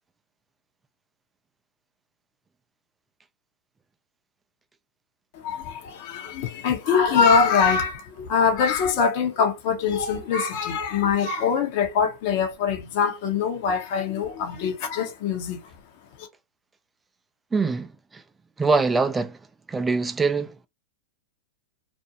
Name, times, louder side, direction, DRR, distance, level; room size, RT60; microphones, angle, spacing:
voice 1, 5.3-15.6 16.2-16.3, left 6 dB, 55° left, 0.8 m, -23 dB
voice 2, 17.5-18.2 18.6-19.4 19.7-20.7, right 4 dB, 15° right, 0.4 m, -24 dB
2.5 x 2.1 x 2.8 m
hypercardioid pair, 105°, 0 cm